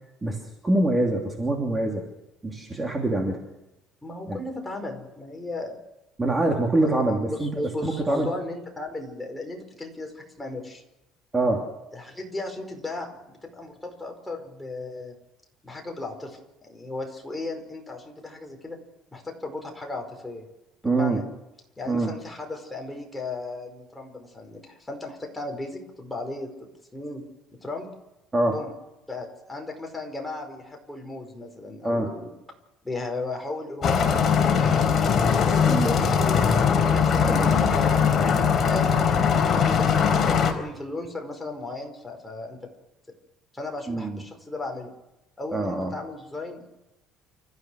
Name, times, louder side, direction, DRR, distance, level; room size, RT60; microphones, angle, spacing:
voice 1, 0.6-2.0 2.4-3.4 4.3-4.4 6.2-7.5 7.8-8.3 11.3-11.7 20.8-21.2 21.9-22.1 28.3-28.6 31.8-32.1 35.7-35.9 37.2-37.5 43.9-44.2 45.5-45.9, right 2 dB, 15° right, 1 dB, 3.0 m, -24 dB
voice 2, 4.0-5.8 6.8-7.0 7.3-10.8 11.9-15.1 15.6-18.8 19.1-20.5 20.9-21.2 21.8-26.5 26.9-27.2 27.6-27.9 28.5-28.7 29.1-32.3 32.8-35.1 35.5-36.5 36.9-39.9 40.2-42.6 43.5-44.9 45.4-46.6, left 2 dB, 10° left, 2 dB, 5.1 m, -36 dB
sound 1, 33.8-40.5, left 6 dB, 35° left, 4.0 m, -21 dB
29.0 x 15.0 x 6.5 m, 0.94 s
cardioid pair, 135°, 0 cm